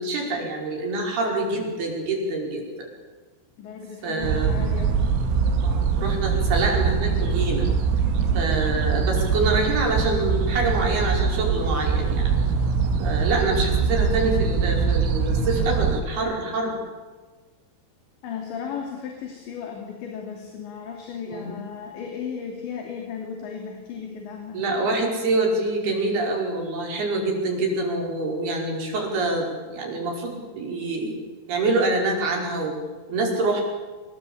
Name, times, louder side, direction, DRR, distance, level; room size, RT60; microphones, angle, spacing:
voice 1, 0.0-2.7 4.0-4.5 5.6-7.7 8.4-12.3 13.0-16.8 21.3-21.6 24.5-31.2 31.5-32.8 33.1-33.6, right 2 dB, 55° right, 0 dB, 7.1 m, -26 dB
voice 2, 3.6-5.1 8.2-8.6 18.2-24.6, left 6 dB, 70° left, 2 dB, 5.1 m, -35 dB
sound 1, 4.2-16.0, right 5 dB, 90° right, 4.7 m, -23 dB
26.0 x 20.5 x 8.7 m, 1.4 s
omnidirectional pair, 5.5 m